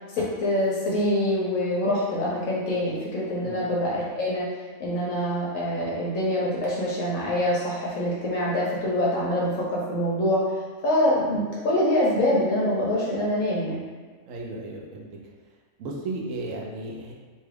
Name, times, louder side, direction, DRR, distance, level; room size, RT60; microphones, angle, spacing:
voice 1, 0.1-4.5 4.8-10.4 10.8-13.8, left 1 dB, 70° left, -5 dB, 1.0 m, -25 dB
voice 2, 14.3-15.1 15.8-17.1, right 2 dB, 70° right, -2 dB, 0.9 m, -34 dB
3.0 x 2.3 x 3.2 m, 1.5 s
omnidirectional pair, 1.5 m